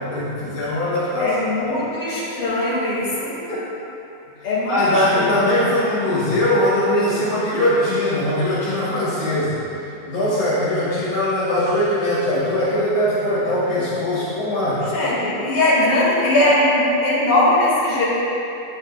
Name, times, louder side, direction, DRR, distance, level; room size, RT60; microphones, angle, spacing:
voice 1, 0.1-1.3 3.5-3.6 4.7-9.6 10.0-14.8, left 1 dB, 60° left, -11 dB, 3.3 m, -21 dB
voice 2, 1.2-3.3 4.4-5.5 14.9-18.0, left 1 dB, 90° left, -10 dB, 4.4 m, -20 dB
13.5 x 10.5 x 2.6 m, 2.9 s
omnidirectional pair, 3.8 m